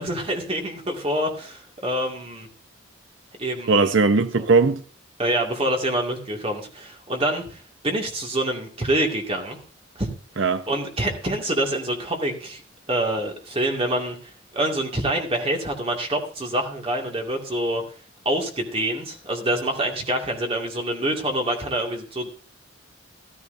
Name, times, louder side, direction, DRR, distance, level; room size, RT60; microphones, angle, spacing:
voice 1, 0.0-2.5 3.4-3.9 4.4-4.5 5.2-9.6 10.0-10.1 10.4-12.6 12.9-17.8 18.3-22.3, right 1 dB, 30° right, 2.2 m, -26 dB
voice 2, 3.7-4.8 10.4-10.6, right 4 dB, 65° right, 0.8 m, -18 dB
14.0 x 14.0 x 2.7 m
head